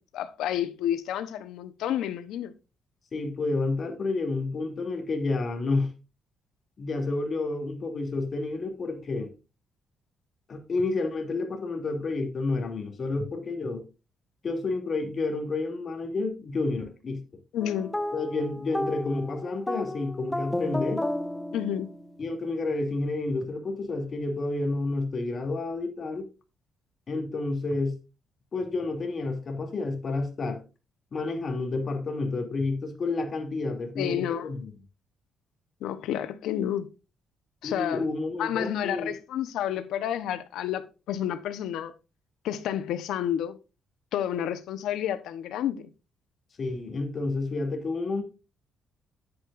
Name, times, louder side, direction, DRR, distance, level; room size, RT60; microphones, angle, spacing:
voice 1, 0.1-2.5 17.5-17.9 21.5-21.9 34.0-34.5 35.8-36.9 37.6-38.0 38.4-41.9 42.4-43.6 44.1-45.9, left 10 dB, 85° left, 1.0 m, -30 dB
voice 2, 3.1-5.9 6.8-9.3 10.5-13.8 14.4-17.2 18.1-21.1 22.2-26.3 27.1-27.9 28.5-30.6 31.1-34.7 37.6-39.1 46.6-48.2, left 3 dB, 45° left, 2.8 m, -30 dB
sound 1, 17.6-22.2, left 1 dB, 5° left, 0.8 m, -33 dB
9.9 x 8.8 x 2.6 m
cardioid pair, 90°, 0 cm